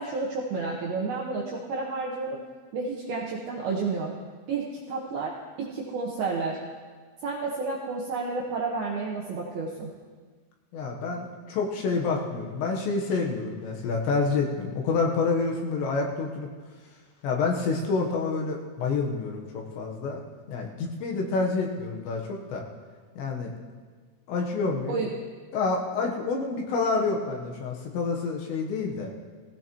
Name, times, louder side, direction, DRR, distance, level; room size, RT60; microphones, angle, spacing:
voice 1, 0.0-2.4 2.7-4.2 4.5-6.6 7.2-9.9 24.9-25.1, right 4 dB, 75° right, -3 dB, 2.3 m, -31 dB
voice 2, 10.7-16.5 17.2-20.2 20.5-22.6 23.2-23.5 24.3-25.0 25.5-29.1, left 4 dB, 70° left, 0 dB, 3.1 m, -28 dB
18.0 x 16.5 x 3.0 m, 1.5 s
omnidirectional pair, 5.8 m